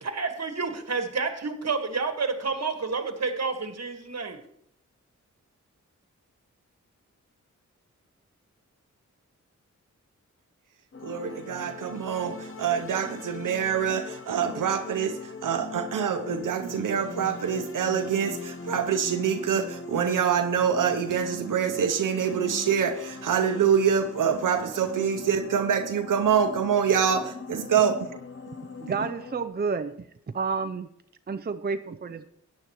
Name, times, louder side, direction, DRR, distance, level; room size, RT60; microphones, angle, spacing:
voice 1, 0.0-4.4, right 4 dB, 55° right, 7 dB, 1.6 m, -29 dB
sound 1, 10.9-29.5, left 3 dB, 40° left, 1.0 m, -41 dB
voice 2, 11.0-28.2, right 7 dB, 80° right, 7 dB, 0.8 m, -25 dB
voice 3, 28.8-30.0 30.3-30.9 31.3-32.3, right 5 dB, 30° right, 9 dB, 0.6 m, -30 dB
14.0 x 9.7 x 3.0 m, 0.71 s
cardioid pair, 50°, 31 cm